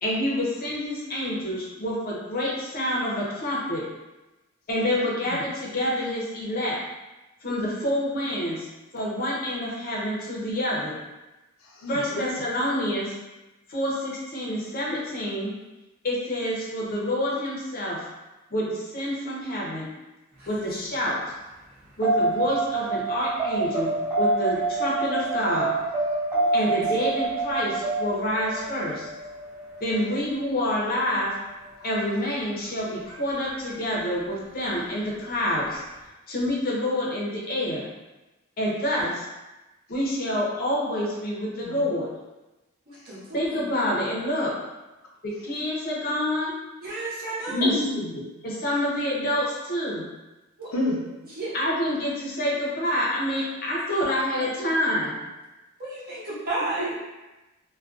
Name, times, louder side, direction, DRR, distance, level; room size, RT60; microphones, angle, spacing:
voice 1, 0.0-3.8 4.7-6.8 7.4-8.7 8.9-11.0 11.9-13.1 13.7-15.5 16.0-18.0 18.5-19.9 20.5-21.2 22.0-25.7 26.5-29.1 29.8-31.3 31.8-35.8 36.3-37.9 38.6-39.3 39.9-42.1 43.3-44.5 45.2-46.5 47.6-47.8 48.4-50.1 51.5-55.2, left 1 dB, 45° left, -4 dB, 0.6 m, -27 dB
voice 2, 11.8-12.3 41.6-41.9 47.5-48.3 50.7-51.0, left 1 dB, 85° left, -3 dB, 0.6 m, -28 dB
sound 1, 22.0-30.4 33.1-33.2, right 3 dB, 15° right, 0.8 m, -26 dB
voice 3, 42.9-43.3 46.8-47.7 50.6-50.7 51.4-51.5 55.8-56.9, right 2 dB, 45° right, -8 dB, 0.8 m, -32 dB
2.3 x 2.2 x 2.4 m, 1.1 s
head